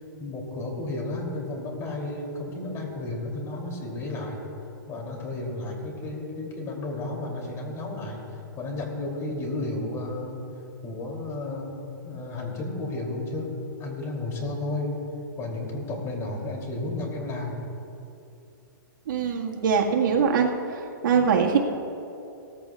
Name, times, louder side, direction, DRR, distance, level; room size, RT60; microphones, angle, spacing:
voice 1, 0.2-4.4 4.9-8.2 8.6-10.4 10.8-11.8 12.0-13.5 13.8-14.9 15.4-17.6, left 2 dB, 25° left, 0 dB, 2.7 m, -32 dB
voice 2, 19.1-20.5 21.0-21.6, right 6 dB, 70° right, 0 dB, 1.7 m, -22 dB
18.0 x 14.5 x 2.3 m, 2.8 s
hypercardioid pair, 140°, 11 cm